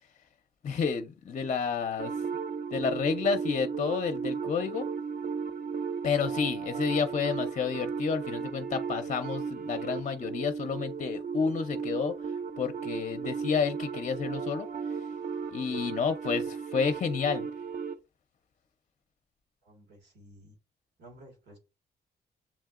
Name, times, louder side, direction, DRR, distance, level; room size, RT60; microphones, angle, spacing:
voice 1, 0.6-2.1 2.7-4.9 6.0-12.1 12.6-14.7 15.5-17.5, left 6 dB, 45° left, 0.6 m, -30 dB
sound 1, 2.0-18.0, right 5 dB, 55° right, 0.6 m, -35 dB
voice 2, 19.6-20.5 21.0-21.6, right 1 dB, 90° right, 1.6 m, -53 dB
7.0 x 2.7 x 2.4 m
cardioid pair, 65°, 17 cm